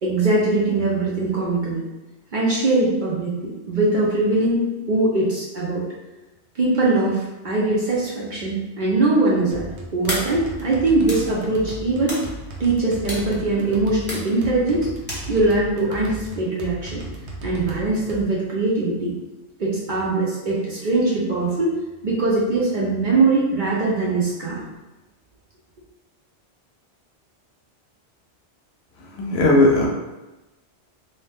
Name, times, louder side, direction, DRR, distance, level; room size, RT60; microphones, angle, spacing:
voice 1, 0.0-1.8 2.3-5.8 6.5-9.7 9.9-12.2 12.6-14.9 15.3-17.0 17.4-19.2 19.6-21.7 22.0-24.6, right 2 dB, 55° right, -5 dB, 0.6 m, -21 dB
sound 1, 9.5-18.2, right 1 dB, 75° right, 0.9 m, -36 dB
sound 2, 10.1-15.8, equal, 10° left, 0.6 m, -35 dB
voice 2, 29.0-29.9, left 2 dB, 70° left, 0 dB, 0.8 m, -17 dB
2.7 x 2.1 x 3.3 m, 1.0 s
omnidirectional pair, 1.2 m